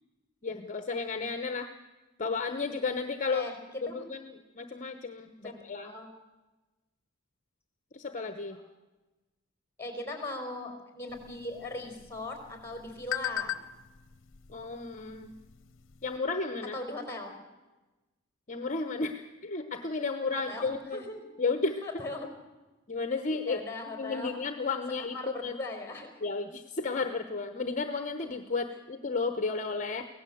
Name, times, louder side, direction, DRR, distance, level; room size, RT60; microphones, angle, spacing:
voice 1, 0.4-1.7 2.2-3.5 3.8-5.9 7.9-8.6 14.5-15.3 16.0-16.8 18.5-21.0 21.4-21.8 22.9-23.6 24.0-25.2 25.4-25.5 26.2-30.1, left 4 dB, 40° left, 8 dB, 1.0 m, -33 dB
voice 2, 9.8-13.5 16.7-17.3 20.3-21.2 21.8-22.3 23.5-24.4 25.1-26.3, left 2 dB, 10° left, 5 dB, 4.5 m, -39 dB
sound 1, 11.1-16.2, left 12 dB, 70° left, 0.8 m, -41 dB
24.0 x 17.0 x 7.8 m, 1.1 s
head